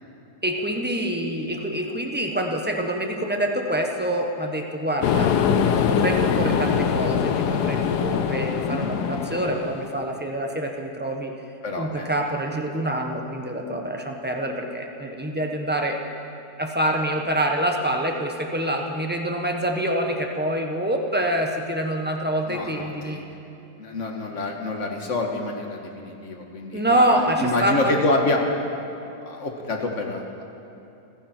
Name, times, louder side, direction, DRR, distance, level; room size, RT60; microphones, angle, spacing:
voice 1, 0.4-11.3 11.8-16.0 16.6-23.2 26.7-28.0, right 1 dB, 5° right, 2 dB, 1.1 m, -26 dB
sound 1, 5.0-10.0, left 7 dB, 70° left, 1.3 m, -23 dB
voice 2, 11.6-12.1 22.4-23.2 23.8-28.5 29.3-30.4, left 2 dB, 45° left, 2 dB, 1.9 m, -27 dB
29.0 x 10.5 x 4.5 m, 3.0 s
omnidirectional pair, 1.9 m